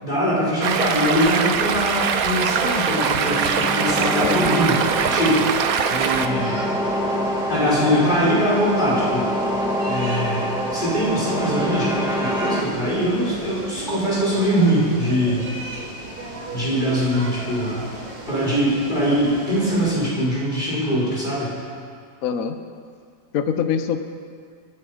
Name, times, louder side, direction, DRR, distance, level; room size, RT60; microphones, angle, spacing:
voice 1, 0.0-5.5 5.9-6.7 7.5-9.2 9.9-15.5 16.5-17.8 18.3-21.5, equal, 25° left, -8 dB, 5.5 m, -22 dB
Stream, 0.6-6.3, right 7 dB, 60° right, 1.1 m, -22 dB
sound 1, 2.6-12.6, equal, 5° right, 1.2 m, -26 dB
sound 2, 6.2-20.1, right 1 dB, 30° right, 2.4 m, -36 dB
voice 2, 22.2-22.6 23.3-24.0, left 7 dB, 60° left, 8 dB, 1.1 m, -23 dB
23.5 x 11.0 x 5.1 m, 2.2 s
omnidirectional pair, 1.9 m